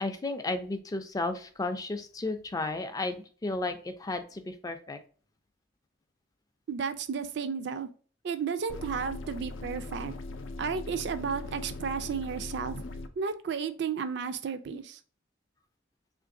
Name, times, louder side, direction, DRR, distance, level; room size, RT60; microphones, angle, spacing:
voice 1, 0.0-5.0, left 2 dB, 20° left, 0.3 m, -33 dB
voice 2, 6.7-7.9 8.2-10.1 10.6-12.8 13.2-15.0, right 6 dB, 60° right, 0.4 m, -33 dB
sound 1, 8.7-13.1, left 2 dB, 85° left, 0.4 m, -40 dB
3.2 x 2.5 x 3.6 m
head